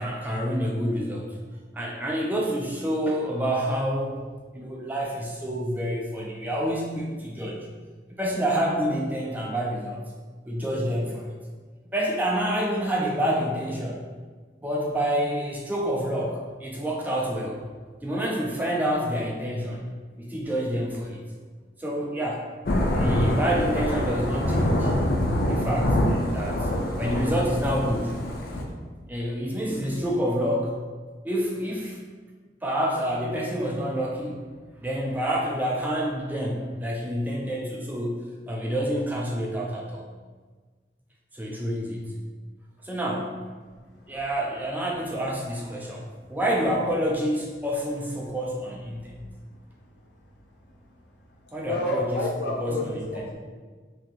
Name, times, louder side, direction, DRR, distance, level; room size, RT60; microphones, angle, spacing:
voice 1, 0.0-1.4 1.7-4.2 4.5-7.6 8.2-10.0 10.5-11.3 11.9-14.0 14.6-17.6 18.0-19.8 20.2-21.2 21.8-22.5 22.9-24.9 25.5-26.7 27.0-28.2 29.1-30.8 31.2-32.0 32.6-34.4 34.8-38.2 38.5-40.1 41.3-42.1 42.8-43.4 44.1-46.0 46.3-49.2 51.5-52.3 52.6-53.2, equal, 10° right, -2 dB, 0.3 m, -28 dB
Thunder / Rain, 22.7-28.6, left 1 dB, 55° left, 0.5 m, -25 dB
voice 2, 51.4-53.4, left 2 dB, 75° left, -3 dB, 0.8 m, -30 dB
2.7 x 2.5 x 4.0 m, 1.4 s
head